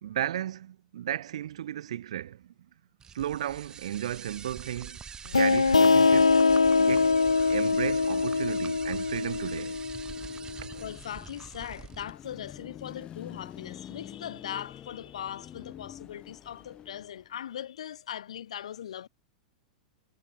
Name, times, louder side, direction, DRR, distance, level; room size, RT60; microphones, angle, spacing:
voice 1, 0.0-2.5 3.1-5.0 5.3-6.4 6.8-7.1 7.5-9.8 10.6-10.8, right 11 dB, 70° right, 1.8 m, -34 dB
sound 1, 3.0-12.1, right 7 dB, 20° right, 3.3 m, -45 dB
sound 2, 5.3-10.7, left 4 dB, 90° left, 0.8 m, -23 dB
Car passing by / Traffic noise roadway noise / Engine, 10.1-17.4, left 10 dB, 30° left, 4.3 m, -47 dB
voice 2, 10.8-19.1, left 10 dB, 70° left, 3.6 m, -40 dB
hypercardioid pair, 100°, 3 cm